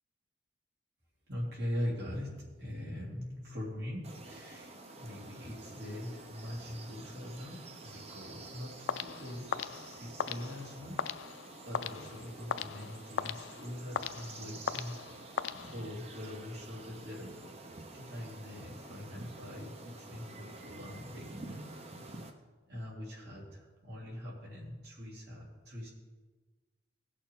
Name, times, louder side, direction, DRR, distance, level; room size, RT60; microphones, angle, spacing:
voice 1, 1.3-4.7 5.0-11.3 11.6-15.3 15.6-17.3 17.9-21.6 22.1-22.4 22.7-25.9, left 1 dB, 60° right, -4 dB, 3.2 m, -42 dB
sound 1, 4.0-22.3, right 2 dB, 35° right, 0.9 m, -49 dB
sound 2, 8.9-16.1, left 8 dB, 80° left, 0.4 m, -39 dB
17.5 x 6.6 x 3.9 m, 1.3 s
head